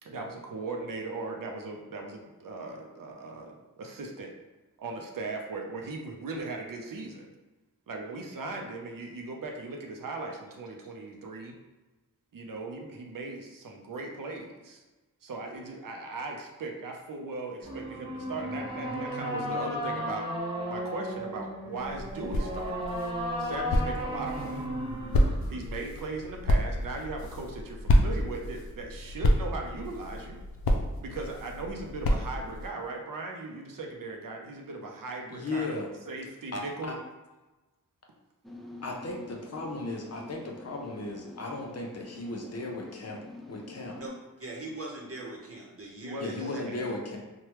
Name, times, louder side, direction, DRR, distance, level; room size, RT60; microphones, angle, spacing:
voice 1, 0.0-4.3 4.8-7.3 7.9-11.6 12.3-14.8 15.2-20.3 20.7-24.7 25.5-30.4 31.0-36.9 46.0-46.8 47.1-47.2, right 3 dB, 70° right, 1 dB, 0.6 m, -38 dB
sound 1, 17.6-25.6, equal, 15° right, 0.7 m, -34 dB
sound 2, 21.8-32.7, equal, 90° left, 0.5 m, -29 dB
voice 2, 35.3-35.9 36.5-36.9 38.8-43.2 43.5-44.0 46.2-47.2, left 2 dB, 45° left, 0 dB, 0.6 m, -36 dB
sound 3, 38.4-44.1, left 2 dB, ahead, 0.3 m, -47 dB
voice 3, 44.4-46.6, right 2 dB, 40° right, -2 dB, 0.9 m, -41 dB
3.2 x 2.2 x 3.0 m, 1.1 s
cardioid pair, 55°, 34 cm